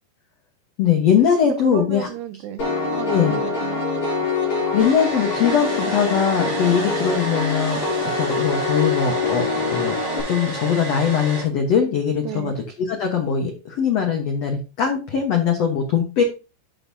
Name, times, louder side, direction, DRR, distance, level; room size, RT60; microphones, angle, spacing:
voice 1, 0.8-2.1 3.1-3.3 4.7-7.8 8.1-9.9 10.3-16.2, left 7 dB, 85° left, 1.4 m, -21 dB
voice 2, 1.4-2.6 3.0-3.8 12.2-12.6, right 11 dB, 80° right, 2.7 m, -32 dB
Piano, 2.6-10.2, left 3 dB, 40° left, 5.4 m, -24 dB
Domestic sounds home sounds, 4.8-11.4, right 1 dB, 30° right, 3.3 m, -31 dB
12.0 x 6.4 x 2.7 m
omnidirectional pair, 5.0 m